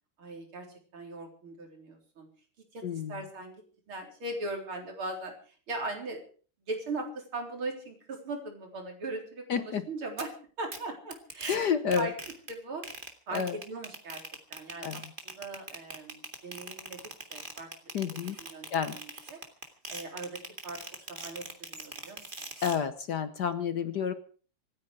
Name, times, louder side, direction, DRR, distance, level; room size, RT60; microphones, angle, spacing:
voice 1, 0.2-0.7 0.9-2.3 2.7-3.5 3.9-6.2 6.7-10.3 10.6-12.1 12.5-12.8 13.3-14.2 14.5-17.9 18.4-19.4 19.9-20.8 21.1-22.2, right 2 dB, 70° right, 2 dB, 4.7 m, -39 dB
voice 2, 2.8-3.2 9.5-9.9 11.5-12.1 13.3-13.6 14.8-15.1 17.9-18.4 18.7-19.0 22.6-24.1, left 7 dB, 60° left, 11 dB, 1.3 m, -30 dB
sound 1, 10.2-10.3 10.7-10.8 11.1-11.6 11.9-12.5 12.8-22.8, right 2 dB, 25° right, 2.2 m, -41 dB
26.0 x 9.8 x 4.8 m, 0.41 s
omnidirectional pair, 2.4 m